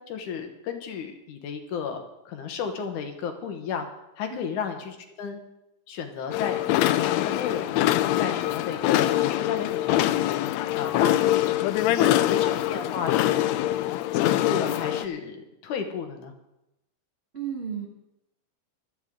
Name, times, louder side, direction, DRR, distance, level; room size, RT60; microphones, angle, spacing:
voice 1, 0.0-3.9 4.2-5.4 5.9-7.8 8.2-10.4 10.7-11.3 12.0-13.7 14.1-16.3, left 6 dB, 75° left, 6 dB, 2.5 m, -33 dB
sound 1, 6.3-15.1, left 14 dB, 90° left, 1.5 m, -24 dB
voice 2, 17.3-17.9, right 7 dB, 65° right, -2 dB, 0.6 m, -34 dB
16.0 x 12.0 x 3.7 m, 0.89 s
omnidirectional pair, 3.7 m